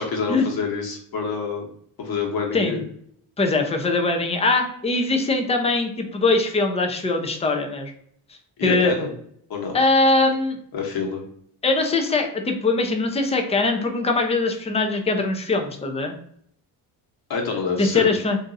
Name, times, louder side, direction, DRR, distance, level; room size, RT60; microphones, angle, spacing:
voice 1, 0.0-1.7 2.0-2.8 8.6-9.1 9.5-9.7 10.7-11.2 17.3-18.2, left 5 dB, 55° left, 1 dB, 1.2 m, -27 dB
voice 2, 3.4-7.9 8.6-8.9 9.7-10.6 11.6-16.1 17.8-18.4, left 3 dB, 15° left, 4 dB, 0.5 m, -21 dB
3.6 x 2.7 x 3.9 m, 0.66 s
cardioid pair, 140°, 42 cm